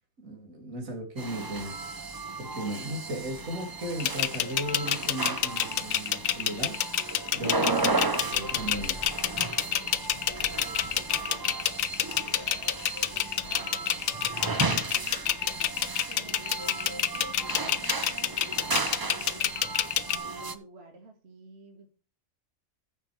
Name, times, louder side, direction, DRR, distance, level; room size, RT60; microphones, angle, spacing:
voice 1, 0.2-1.9 2.4-6.8 7.3-9.0, right 1 dB, 80° right, 3.1 m, -36 dB
sound 1, 1.2-20.6, right 3 dB, 25° right, 0.5 m, -34 dB
sound 2, 4.0-20.2, left 11 dB, 85° left, 1.2 m, -28 dB
Bird, 7.4-15.7, equal, 25° left, 2.0 m, -51 dB
voice 2, 7.9-10.3 10.6-12.7 13.1-19.7 20.1-21.9, right 3 dB, 50° right, 2.1 m, -52 dB
14.5 x 7.5 x 3.3 m
omnidirectional pair, 1.4 m